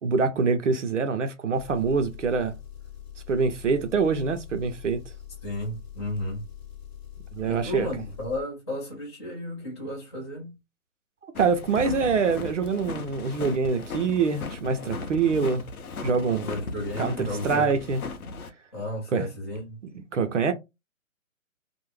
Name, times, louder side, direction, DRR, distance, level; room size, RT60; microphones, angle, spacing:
voice 1, 0.0-2.5 3.3-5.0 7.3-7.9 11.4-15.6 16.0-16.5 17.0-18.0 19.1-19.3 19.9-20.5, right 5 dB, 60° right, 0.6 m, -25 dB
Engine, 1.5-8.4, left 10 dB, 45° left, 0.8 m, -43 dB
voice 2, 5.4-6.5 7.4-10.5 16.4-17.7 18.7-19.8, left 1 dB, 20° left, 1.0 m, -33 dB
sound 1, 11.3-18.5, left 3 dB, 90° left, 0.7 m, -37 dB
2.4 x 2.0 x 3.1 m
hypercardioid pair, 160°, 42 cm